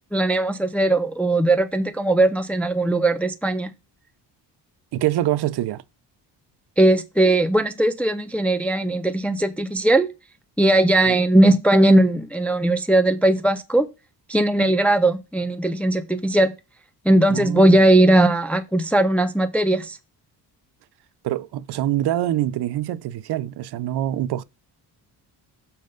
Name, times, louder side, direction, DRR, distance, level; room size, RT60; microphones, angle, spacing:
voice 1, 0.1-3.7 6.8-10.1 10.6-13.9 14.3-16.5 17.1-20.0, right 1 dB, 5° left, 0.3 m, -18 dB
voice 2, 4.9-5.8 11.1-11.2 11.5-11.6 17.3-17.8 21.2-24.4, right 13 dB, 65° right, 0.6 m, -25 dB
6.5 x 5.7 x 5.0 m
cardioid pair, 170°, 42 cm